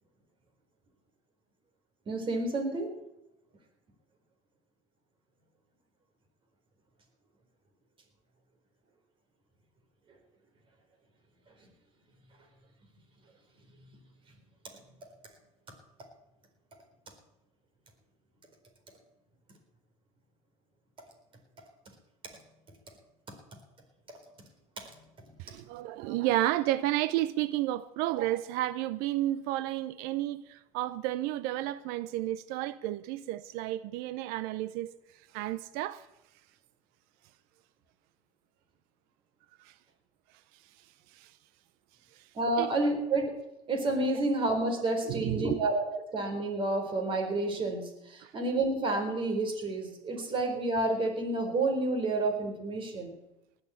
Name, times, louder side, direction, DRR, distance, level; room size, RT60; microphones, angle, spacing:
voice 1, 2.1-2.9 42.3-43.4 43.7-45.9 46.1-53.2, right 2 dB, 30° right, 4.3 m, -29 dB
voice 2, 25.4-34.9 35.3-36.0 39.6-39.7 41.1-41.3 42.2-42.3 42.6-42.7 44.1-44.2 45.1-45.6 48.2-48.3, right 15 dB, 65° right, 0.7 m, -32 dB
19.5 x 6.8 x 8.5 m
supercardioid pair, 115°, 17 cm